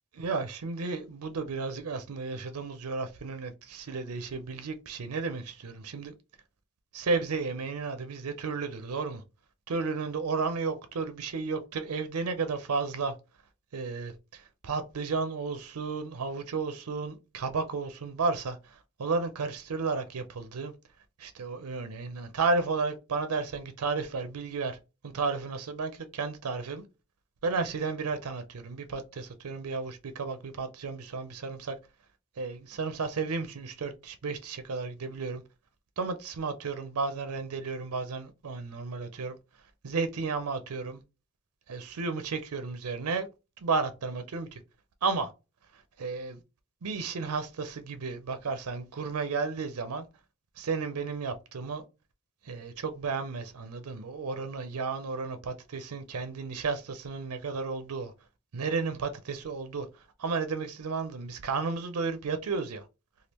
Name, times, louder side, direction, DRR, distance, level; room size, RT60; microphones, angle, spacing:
voice 1, 0.2-6.1 6.9-9.2 9.7-13.1 13.7-20.7 21.2-24.8 25.0-26.8 27.4-31.8 32.4-35.4 36.0-39.3 39.8-41.0 41.7-43.3 43.6-44.6 45.0-45.3 46.0-46.4 46.8-50.0 50.6-51.8 52.4-58.1 58.5-62.9, right 4 dB, 85° right, 0.5 m, -33 dB
3.4 x 2.3 x 2.9 m
head